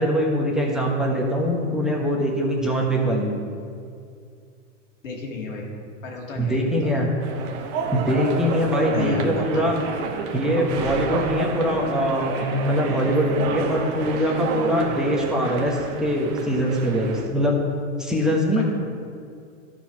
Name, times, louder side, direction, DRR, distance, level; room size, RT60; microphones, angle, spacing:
voice 1, 0.0-3.3 6.4-7.2 7.9-9.8 10.3-17.6 18.0-18.6, equal, ahead, -2 dB, 1.1 m, -22 dB
voice 2, 5.0-5.7 6.0-7.0 8.9-9.6 18.6-18.7, left 3 dB, 85° left, -1 dB, 2.3 m, -32 dB
sound 1, 7.2-17.3, right 5 dB, 35° right, 1.0 m, -30 dB
12.0 x 4.7 x 5.9 m, 2.3 s
hypercardioid pair, 125°, 38 cm